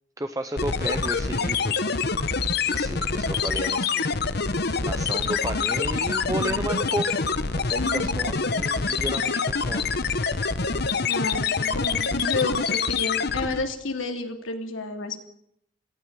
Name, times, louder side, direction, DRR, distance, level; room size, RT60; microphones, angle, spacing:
voice 1, 0.2-1.8 2.6-4.1 4.8-7.1 7.5-9.9, right 1 dB, 15° right, 7 dB, 0.9 m, -33 dB
sound 1, 0.6-13.7, left 5 dB, 55° left, 1.1 m, -26 dB
voice 2, 7.8-8.2 11.0-15.2, left 3 dB, 80° left, 4 dB, 2.9 m, -31 dB
18.0 x 15.5 x 9.3 m, 0.74 s
head